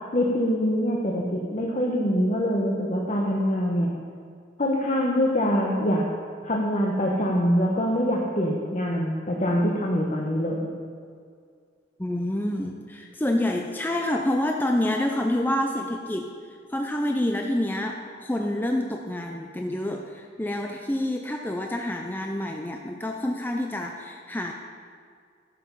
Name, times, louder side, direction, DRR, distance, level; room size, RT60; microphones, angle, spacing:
voice 1, 0.1-3.9 4.6-6.0 6.4-10.6, equal, 40° left, -2 dB, 1.0 m, -24 dB
voice 2, 12.0-16.3 16.7-24.5, left 1 dB, 10° left, 2 dB, 0.5 m, -27 dB
12.0 x 7.2 x 5.5 m, 2.1 s
head